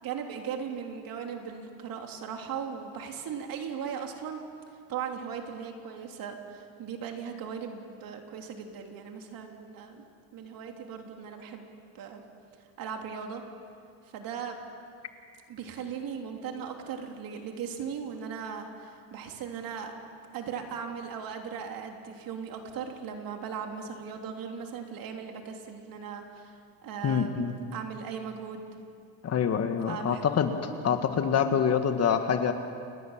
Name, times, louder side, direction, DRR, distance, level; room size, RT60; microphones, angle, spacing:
voice 1, 0.0-4.4 4.9-10.0 10.3-11.7 11.9-12.2 12.8-13.4 14.0-14.6 15.5-19.9 20.3-27.4 27.7-28.6 29.7-30.2, right 7 dB, 50° right, 3 dB, 3.3 m, -38 dB
voice 2, 27.0-27.5 29.2-30.5 30.8-32.5, left 7 dB, 35° left, 7 dB, 1.7 m, -26 dB
29.0 x 20.5 x 7.4 m, 2.3 s
cardioid pair, 135°, 43 cm